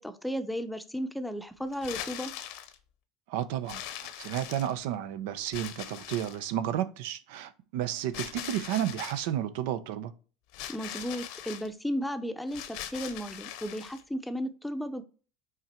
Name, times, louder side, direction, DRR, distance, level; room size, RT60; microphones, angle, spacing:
voice 1, 0.0-2.3 10.7-15.0, equal, 5° left, 0.7 m, -34 dB
sound 1, 1.7-2.8 3.7-4.9 5.5-6.5 8.1-9.3 10.5-11.7 12.5-14.0, left 11 dB, 70° left, 0.8 m, -41 dB
voice 2, 3.3-10.1, right 11 dB, 75° right, 0.6 m, -32 dB
5.8 x 3.9 x 4.4 m
supercardioid pair, 110°, 0 cm